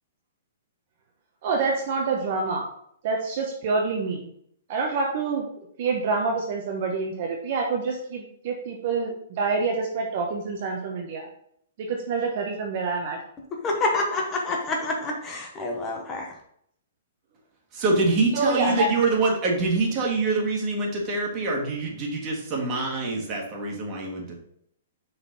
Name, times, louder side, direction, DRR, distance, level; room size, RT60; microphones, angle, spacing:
voice 1, 1.4-2.7 3.0-4.3 4.7-5.5 5.8-11.3 11.8-13.2 18.3-18.9, right 4 dB, 50° right, 0 dB, 0.9 m, -27 dB
voice 2, 13.6-16.3, left 2 dB, 20° left, 1 dB, 1.0 m, -27 dB
voice 3, 17.7-24.4, right 3 dB, 30° right, -1 dB, 1.7 m, -25 dB
6.0 x 4.1 x 4.0 m, 0.70 s
hypercardioid pair, 145°, 0 cm